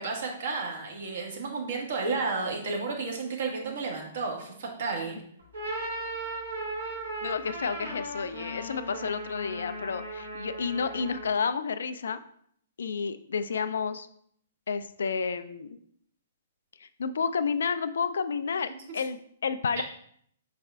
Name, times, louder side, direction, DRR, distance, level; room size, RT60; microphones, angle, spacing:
voice 1, 0.0-5.2 19.8-19.9, right 4 dB, 60° right, 0 dB, 1.3 m, -32 dB
sound 1, 5.4-11.4, right 1 dB, 85° right, 1.9 m, -37 dB
voice 2, 7.2-12.2 12.8-14.1 14.7-15.8 16.8-19.8, left 5 dB, 70° left, 12 dB, 0.3 m, -31 dB
5.5 x 4.1 x 2.3 m, 0.66 s
figure-of-eight pair, 120°, 0 cm